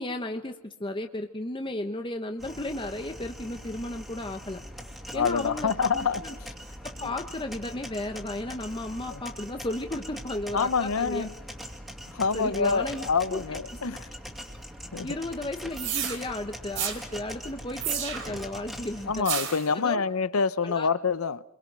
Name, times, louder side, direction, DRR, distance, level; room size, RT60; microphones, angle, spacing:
voice 1, 0.0-4.6 5.1-6.3 7.0-11.3 12.3-13.4 13.8-14.0 15.0-20.0 20.6-20.9, left 1 dB, 25° left, 1.0 m, -34 dB
sound 1, 2.4-19.2, equal, ahead, 2.4 m, -42 dB
voice 2, 5.1-6.2 7.0-7.1 9.1-9.2 10.5-11.3 12.1-14.1 14.9-15.1 19.1-21.4, left 5 dB, 85° left, 0.8 m, -26 dB
sound 2, 15.8-16.2 16.8-17.0 17.8-18.4 19.3-19.7, right 9 dB, 65° right, 4.9 m, -30 dB
28.5 x 23.0 x 6.2 m
head